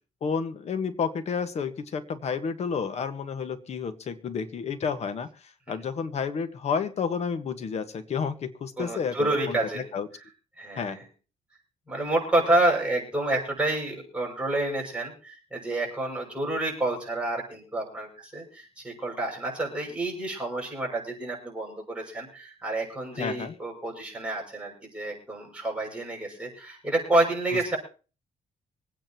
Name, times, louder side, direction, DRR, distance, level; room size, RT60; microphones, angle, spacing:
voice 1, 0.2-5.3 5.7-10.1 10.8-11.0 23.1-23.5 27.5-27.7, left 6 dB, 50° left, 10 dB, 1.5 m, -31 dB
voice 2, 8.8-9.8 10.6-11.0 11.9-27.8, right 2 dB, 10° right, -2 dB, 6.4 m, -29 dB
25.0 x 9.3 x 3.0 m, 0.35 s
cardioid pair, 130°, 14 cm